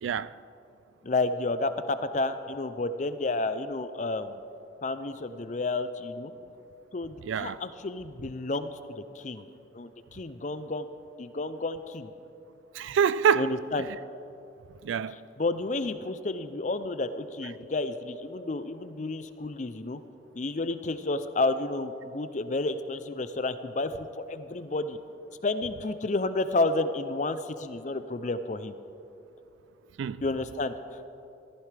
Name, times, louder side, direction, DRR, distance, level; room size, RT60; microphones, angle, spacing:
voice 1, 0.0-0.4 7.2-7.6 12.7-13.5 14.8-15.3 30.0-30.2, right 7 dB, 85° right, 0.3 m, -26 dB
voice 2, 1.0-4.4 4.8-6.3 6.9-9.5 9.7-10.9 11.2-12.1 13.4-13.9 15.4-20.0 20.3-25.0 25.4-28.7 30.2-31.1, left 2 dB, 40° left, 0.5 m, -31 dB
14.5 x 14.5 x 3.4 m
head